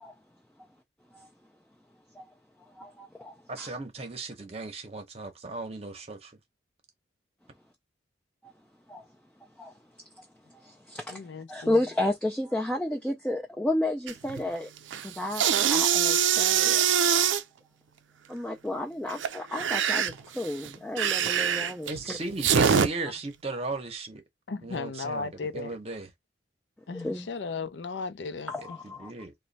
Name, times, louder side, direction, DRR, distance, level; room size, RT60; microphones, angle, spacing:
voice 1, 2.8-3.7 8.4-8.5 8.9-9.0 9.6-9.7 10.2-10.3 10.5-11.2 11.5-14.7 15.0-16.8 18.3-22.2 26.9-27.3 28.5-29.1, left 1 dB, 5° left, 0.3 m, -32 dB
voice 2, 3.5-6.3 21.9-24.2 24.6-26.1 28.6-29.3, right 3 dB, 35° right, 0.8 m, -36 dB
voice 3, 11.1-11.7 24.5-25.7 26.9-28.5, left 4 dB, 70° left, 0.5 m, -35 dB
sound 1, 14.1-14.4 14.8-17.4 19.1-22.9, right 8 dB, 85° right, 0.4 m, -24 dB
3.0 x 2.2 x 3.9 m
head